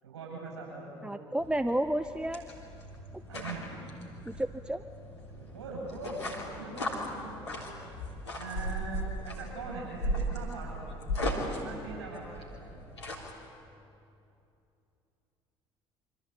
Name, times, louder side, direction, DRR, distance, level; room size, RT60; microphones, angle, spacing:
voice 1, 0.0-1.5 3.3-3.8 5.3-7.7 8.3-10.8 11.6-12.7, right 3 dB, 80° right, -1 dB, 7.9 m, -42 dB
voice 2, 1.0-2.4 4.3-4.8, right 1 dB, 5° right, 10 dB, 0.9 m, -31 dB
sound 1, 1.4-13.3, equal, 85° left, 3.5 m, -37 dB
27.5 x 25.5 x 8.3 m, 2.7 s
figure-of-eight pair, 55°, 14 cm